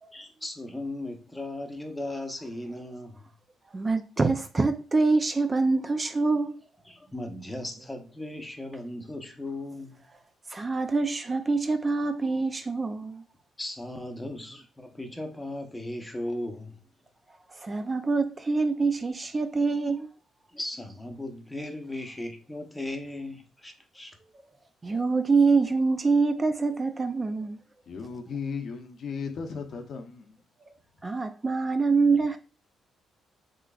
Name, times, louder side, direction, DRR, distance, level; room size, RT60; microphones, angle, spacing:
voice 1, 0.1-3.3 6.9-10.0 13.6-16.8 20.5-24.2, left 1 dB, 10° left, 0.8 m, -37 dB
voice 2, 3.7-6.6 10.5-13.2 17.6-20.1 24.8-27.6 31.0-32.4, right 4 dB, 25° right, 0.4 m, -25 dB
voice 3, 27.9-30.4, left 5 dB, 60° left, 0.6 m, -36 dB
3.8 x 3.1 x 2.3 m
cardioid pair, 90°, 0 cm